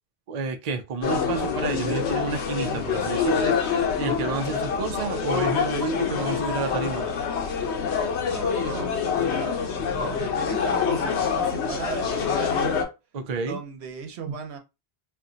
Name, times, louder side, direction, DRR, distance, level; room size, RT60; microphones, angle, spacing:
voice 1, 0.3-7.1 13.1-13.6, right 4 dB, 50° right, 0.5 m, -30 dB
sound 1, 1.0-12.8, left 6 dB, 85° left, 1.0 m, -26 dB
voice 2, 8.3-9.5 9.8-12.8 13.5-14.6, right 5 dB, 80° right, 1.0 m, -36 dB
2.5 x 2.2 x 3.7 m
omnidirectional pair, 1.1 m